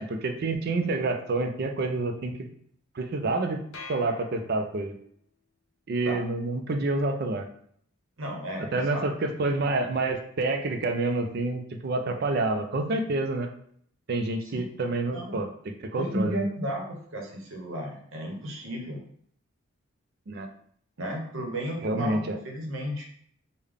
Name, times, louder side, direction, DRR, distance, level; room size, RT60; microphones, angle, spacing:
voice 1, 0.0-2.4 3.0-3.6 3.9-4.9 5.9-7.5 8.7-13.5 14.1-16.4 20.3-20.5 21.8-22.4, right 2 dB, 45° right, 5 dB, 0.4 m, -28 dB
sound 1, 3.7-5.1, left 4 dB, 70° left, 0.7 m, -45 dB
voice 2, 8.2-9.1 14.4-14.7 15.1-15.4 15.9-19.0 21.0-23.0, equal, 65° right, 1 dB, 0.9 m, -34 dB
3.6 x 2.2 x 3.4 m, 0.64 s
head